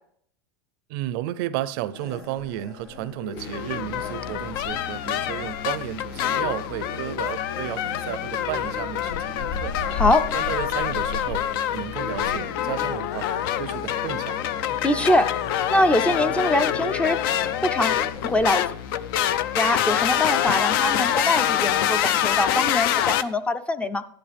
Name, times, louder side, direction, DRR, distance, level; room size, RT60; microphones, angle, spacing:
voice 1, 0.9-9.8 10.3-11.5 11.7-13.3 13.6-14.4, right 14 dB, 60° right, 0.6 m, -33 dB
sound 1, 1.9-18.5, left 4 dB, 90° left, 3.4 m, -37 dB
sound 2, 3.4-23.2, left 11 dB, 65° left, 0.6 m, -26 dB
voice 2, 9.9-10.3 14.8-15.3 15.7-17.2 17.6-18.7 19.6-24.0, left 1 dB, 10° left, 0.5 m, -23 dB
13.0 x 11.0 x 3.4 m
supercardioid pair, 135°, 13 cm